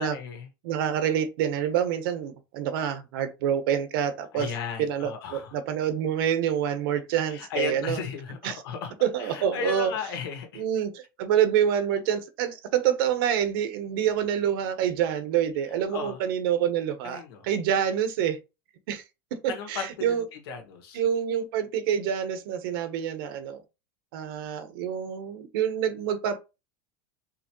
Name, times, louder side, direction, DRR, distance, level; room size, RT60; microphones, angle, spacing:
voice 1, 0.0-0.5 4.3-5.6 7.3-8.9 9.2-10.6 15.9-16.2 17.0-17.4 19.5-20.1 20.5-21.0, left 5 dB, 80° left, 1.8 m, -35 dB
voice 2, 0.6-4.5 4.8-8.0 8.4-8.6 9.0-9.9 10.5-18.4 18.9-19.0 19.3-20.2 20.9-23.6 24.1-26.4, right 9 dB, 70° right, 1.0 m, -27 dB
4.9 x 3.1 x 3.1 m
supercardioid pair, 160°, 12 cm